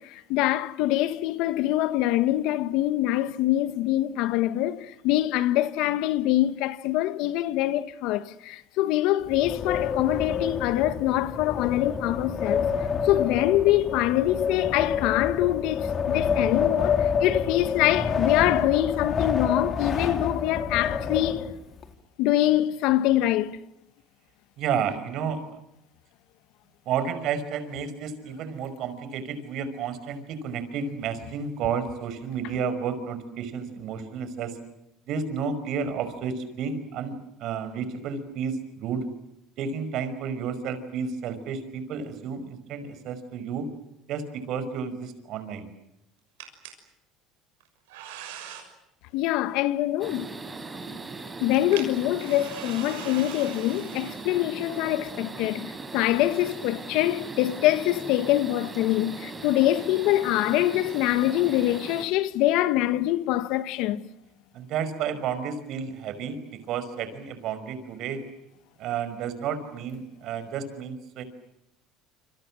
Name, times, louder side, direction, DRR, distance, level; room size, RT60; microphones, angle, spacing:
voice 1, 0.0-12.7 13.0-21.4 22.2-23.6 49.1-50.3 51.4-64.0, left 15 dB, 70° left, 1.4 m, -24 dB
Wind, 9.2-21.8, left 6 dB, 40° left, 3.5 m, -28 dB
voice 2, 24.6-25.4 26.9-34.6 35.1-39.1 39.6-43.7 44.1-45.7 64.5-68.2 68.8-71.2, right 6 dB, 60° right, 5.4 m, -31 dB
sound 1, 46.4-46.7 47.6-48.7 50.6-50.7 51.4-54.6, right 10 dB, 85° right, 6.4 m, -42 dB
sound 2, 50.0-62.1, right 3 dB, 20° right, 4.7 m, -39 dB
27.5 x 26.5 x 7.7 m
supercardioid pair, 90°, 0 cm